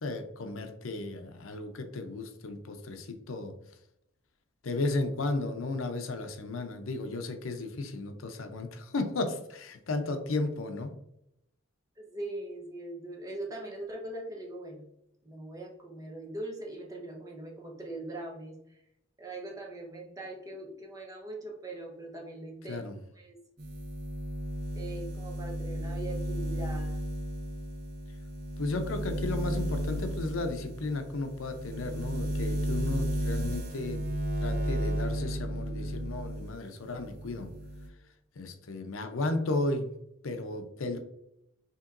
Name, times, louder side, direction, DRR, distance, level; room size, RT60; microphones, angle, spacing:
voice 1, 0.0-3.5 4.6-10.9 22.7-23.0 28.6-34.0 34.4-37.5 38.4-39.9 40.2-41.0, left 2 dB, 80° left, 7 dB, 0.6 m, -34 dB
voice 2, 12.0-14.9 15.2-18.8 19.2-22.8 23.1-23.4 24.7-27.1, right 2 dB, 15° right, -1 dB, 0.8 m, -41 dB
sound 1, 23.6-36.5 36.9-37.9, right 1 dB, 50° right, 0.8 m, -34 dB
5.5 x 2.9 x 2.5 m, 0.80 s
head